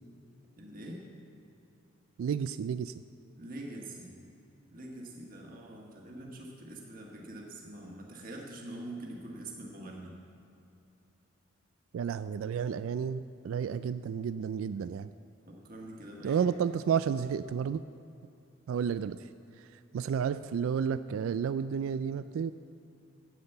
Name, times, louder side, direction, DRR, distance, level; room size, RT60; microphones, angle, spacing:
voice 1, 0.6-1.0 3.3-4.1 4.7-10.1 15.5-16.4, right 1 dB, 40° right, -1 dB, 1.6 m, -44 dB
voice 2, 2.2-3.0 11.9-15.1 16.2-17.8 18.7-19.3 19.6-19.7 19.9-22.5, right 7 dB, 80° right, 14 dB, 0.3 m, -31 dB
9.4 x 8.7 x 8.0 m, 2.8 s
head